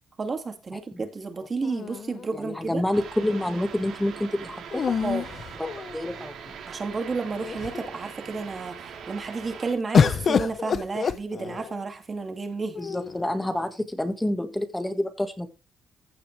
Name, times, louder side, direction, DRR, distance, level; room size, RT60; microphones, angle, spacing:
voice 1, 0.2-2.8 5.0-5.3 6.7-12.8, right 4 dB, 35° right, 2.3 m, -32 dB
sound 1, 1.6-2.7 4.7-6.2 7.0-7.1 7.4-8.0 9.9-11.8 12.7-13.4, left 6 dB, 50° left, 1.0 m, -27 dB
voice 2, 2.3-4.8 5.6-6.6 12.8-15.5, left 1 dB, 10° left, 1.7 m, -28 dB
sound 2, 2.9-9.7, right 7 dB, 70° right, 3.3 m, -41 dB
15.0 x 6.8 x 3.3 m
cardioid pair, 90°, 0 cm